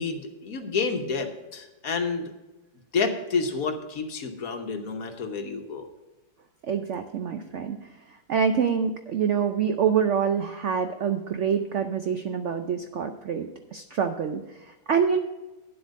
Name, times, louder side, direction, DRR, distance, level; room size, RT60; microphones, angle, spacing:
voice 1, 0.0-2.3 2.9-5.9, left 4 dB, 55° left, 5 dB, 1.4 m, -29 dB
voice 2, 6.6-7.8 8.1-15.2, right 7 dB, 70° right, 7 dB, 0.7 m, -26 dB
9.9 x 7.9 x 5.2 m, 1.1 s
omnidirectional pair, 1.9 m